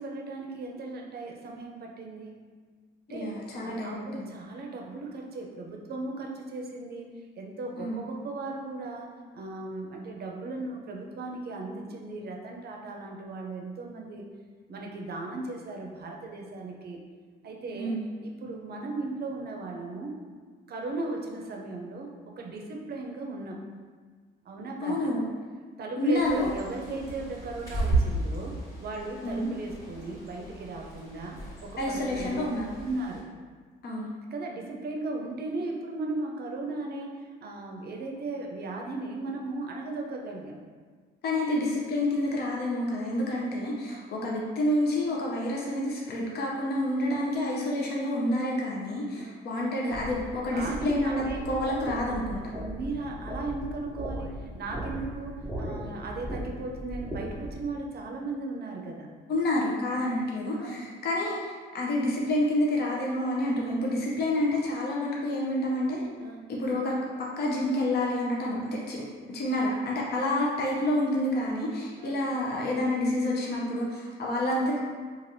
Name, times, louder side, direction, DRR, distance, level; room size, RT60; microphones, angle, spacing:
voice 1, 0.0-2.4 3.1-14.3 14.7-17.0 17.4-17.9 18.2-20.2 20.7-23.7 24.4-25.1 25.8-32.5 32.8-33.2 34.3-40.6 43.9-44.1 49.1-49.3 50.5-51.8 52.6-59.1 60.0-60.1 60.5-60.9 66.2-66.5 72.0-72.2, right 2 dB, 55° right, 1 dB, 0.5 m, -37 dB
voice 2, 3.1-4.3 7.8-8.1 17.7-18.2 24.8-25.3 26.0-26.5 29.2-29.5 31.8-32.8 33.8-34.1 41.2-52.4 59.3-66.0 66.5-74.8, left 1 dB, 55° left, -3 dB, 0.6 m, -28 dB
Bird, 26.1-33.2, right 2 dB, 20° left, 1.3 m, -34 dB
sound 1, 49.9-57.6, right 1 dB, 5° right, 0.5 m, -38 dB
3.2 x 2.4 x 2.6 m, 1.5 s
cardioid pair, 90°, 20 cm